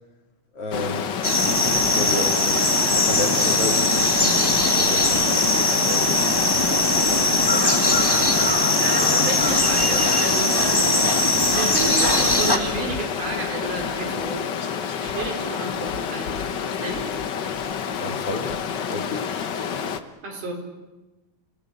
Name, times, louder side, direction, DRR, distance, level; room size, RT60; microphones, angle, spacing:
voice 1, 0.5-1.1 1.4-6.1 7.2-7.8 14.6-15.3 18.0-19.3, left 2 dB, 50° left, 3 dB, 3.3 m, -32 dB
Stream, 0.7-20.0, left 7 dB, 65° left, 1.0 m, -29 dB
sound 1, 1.2-12.6, left 2 dB, 15° left, 0.8 m, -20 dB
voice 2, 8.8-10.6 11.1-14.5 15.0-16.3 16.7-17.2 20.2-20.5, right 3 dB, 75° right, 1 dB, 6.0 m, -31 dB
29.0 x 18.5 x 8.8 m, 1.1 s
omnidirectional pair, 3.6 m